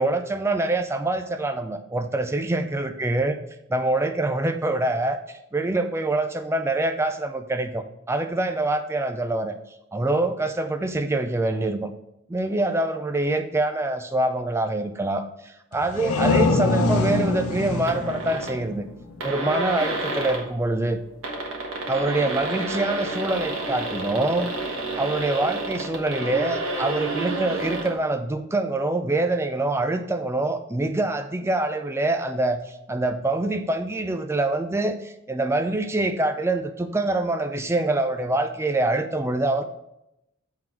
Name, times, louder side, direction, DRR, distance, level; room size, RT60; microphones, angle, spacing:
voice 1, 0.0-3.3 3.7-9.5 9.9-11.9 12.3-18.8 19.2-21.0 21.9-24.5 24.9-39.6, right 2 dB, 10° right, 8 dB, 0.3 m, -25 dB
sound 1, 15.7-19.3, left 2 dB, 85° left, 0.8 m, -24 dB
sound 2, 17.9-18.6 18.9-19.0 19.2-20.5 21.1-27.9, right 2 dB, 65° right, 1.4 m, -30 dB
7.7 x 3.7 x 4.4 m, 0.85 s
head